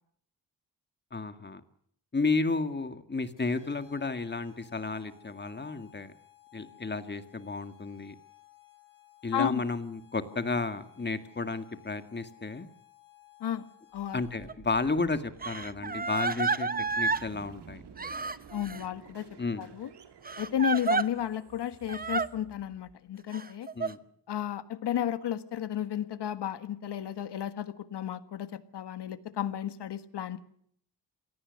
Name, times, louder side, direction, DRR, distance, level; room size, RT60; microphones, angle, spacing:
voice 1, 1.1-1.6 2.1-6.1 6.5-8.1 9.2-12.7 14.1-16.7 17.0-17.8 19.4-19.7 23.8-24.0, left 3 dB, 25° left, 10 dB, 2.0 m, -32 dB
sound 1, 3.4-14.8, left 15 dB, 50° left, 6.5 m, -58 dB
voice 2, 13.9-14.2 18.5-19.3 19.6-19.9 20.4-23.7 24.3-28.5 28.7-30.4, left 10 dB, 85° left, 12 dB, 1.6 m, -33 dB
sound 2, 13.9-23.1, right 7 dB, 85° right, 3.0 m, -52 dB
Crying sobbing, 14.5-14.6 15.4-17.3 18.0-18.8 20.3-21.1 21.9-22.3 23.3-23.9, right 3 dB, 20° right, 0.9 m, -30 dB
26.0 x 18.0 x 6.5 m, 0.66 s
wide cardioid pair, 115°, 40 cm